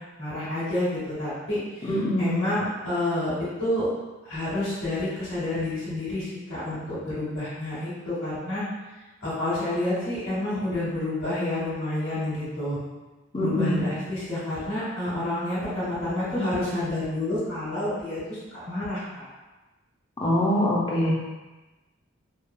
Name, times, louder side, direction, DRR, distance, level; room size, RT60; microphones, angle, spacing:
voice 1, 0.2-3.3 3.6-3.9 4.2-8.6 9.2-12.8 13.4-19.3, left 1 dB, 80° left, -12 dB, 1.4 m, -29 dB
voice 2, 1.8-2.4 13.3-13.8 20.2-21.1, equal, 25° left, -5 dB, 0.5 m, -24 dB
3.1 x 2.3 x 2.3 m, 1.1 s
head